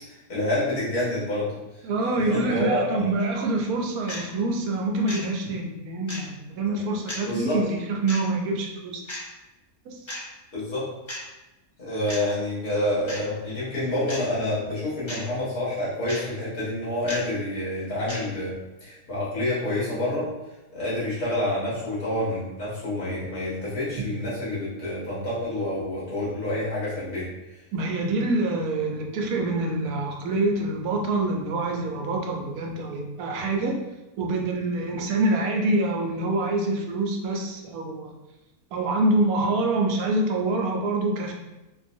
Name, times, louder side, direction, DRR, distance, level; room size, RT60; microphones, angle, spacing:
voice 1, 0.3-1.5 2.1-3.1 6.7-6.8 7.2-7.6 10.5-10.8 11.8-18.5 18.8-20.3 20.7-27.3, left 1 dB, 75° left, -9 dB, 2.0 m, -28 dB
voice 2, 1.8-9.0 9.9-10.0 27.7-33.8 34.2-38.1 38.7-41.3, right 2 dB, 75° right, 1 dB, 1.0 m, -26 dB
sound 1, 3.2-3.3 4.1-4.2 5.1-5.2 6.1-6.2 7.1-7.2 8.1-8.2 9.1-9.2 10.1-10.2 11.1-11.2 12.1-12.2 13.1-13.2 14.1-14.3 15.1-15.2 16.1-16.2 17.1-17.2 18.1-18.2, left 1 dB, 30° left, 0.5 m, -34 dB
3.9 x 2.3 x 2.6 m, 1.0 s
omnidirectional pair, 1.6 m